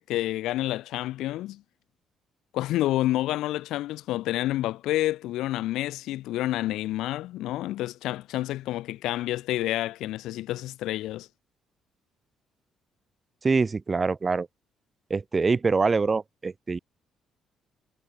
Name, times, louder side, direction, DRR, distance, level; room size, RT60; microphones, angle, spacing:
voice 1, 0.0-1.6 2.5-11.3, left 15 dB, 85° left, 2.6 m, -29 dB
voice 2, 13.4-14.5 15.1-16.8, right 4 dB, 25° right, 1.2 m, -24 dB
cardioid pair, 135°, 0 cm